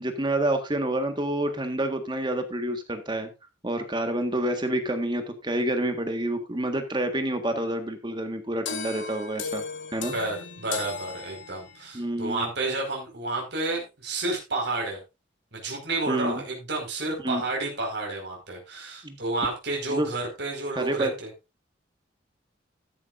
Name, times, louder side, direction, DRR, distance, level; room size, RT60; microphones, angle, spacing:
voice 1, 0.0-3.3 3.6-9.6 9.9-10.1 11.9-12.5 16.1-16.4 17.2-17.4 19.0-19.2 19.9-20.1 20.7-21.1, right 1 dB, 25° right, 6 dB, 1.6 m, -28 dB
sound 1, 8.7-11.9, left 5 dB, 75° left, 1.7 m, -36 dB
voice 2, 10.1-15.0 15.5-21.3, right 2 dB, 60° right, 0 dB, 5.0 m, -30 dB
13.5 x 11.0 x 2.6 m, 0.25 s
head